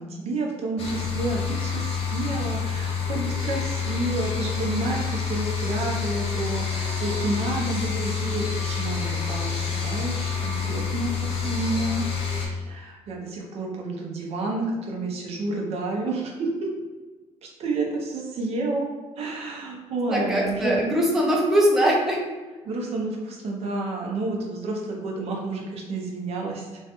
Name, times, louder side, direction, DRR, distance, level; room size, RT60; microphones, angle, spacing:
voice 1, 0.0-16.7 17.4-18.9 19.2-20.9 22.6-26.7, right 2 dB, 60° right, 0 dB, 0.6 m, -30 dB
sound 1, 0.8-12.5, left 6 dB, 55° left, 0.6 m, -28 dB
voice 2, 20.1-22.2, equal, 5° right, -3 dB, 0.5 m, -21 dB
3.1 x 2.2 x 2.9 m, 1.3 s
cardioid pair, 125°, 12 cm